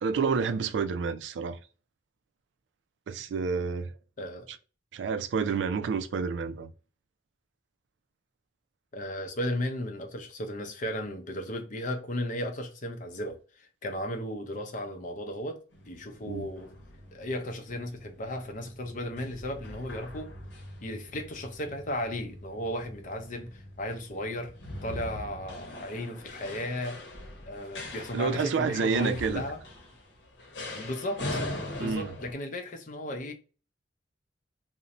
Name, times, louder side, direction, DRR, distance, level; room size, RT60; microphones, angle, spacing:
voice 1, 0.0-1.6 3.1-3.9 4.9-6.7 16.2-16.5 28.1-29.4 31.8-32.1, right 5 dB, 80° right, 0.3 m, -29 dB
voice 2, 8.9-15.6 15.9-16.7 17.1-20.3 20.8-24.5 24.8-27.0 27.5-29.6 30.7-31.5 31.8-33.3, left 1 dB, 45° left, 0.6 m, -35 dB
sound 1, 15.7-32.3, left 1 dB, 80° left, 0.8 m, -42 dB
2.6 x 2.1 x 2.8 m
head